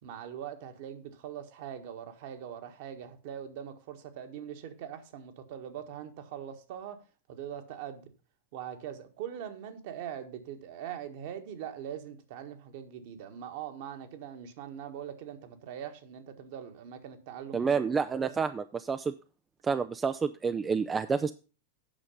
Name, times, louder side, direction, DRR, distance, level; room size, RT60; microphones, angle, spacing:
voice 1, 0.0-7.0 7.3-8.1 8.5-17.9 18.2-18.3, right 9 dB, 50° right, 1.5 m, -42 dB
voice 2, 17.5-19.1 19.6-21.3, right 5 dB, 15° right, 0.4 m, -29 dB
8.8 x 6.4 x 5.4 m
figure-of-eight pair, 90°, 0 cm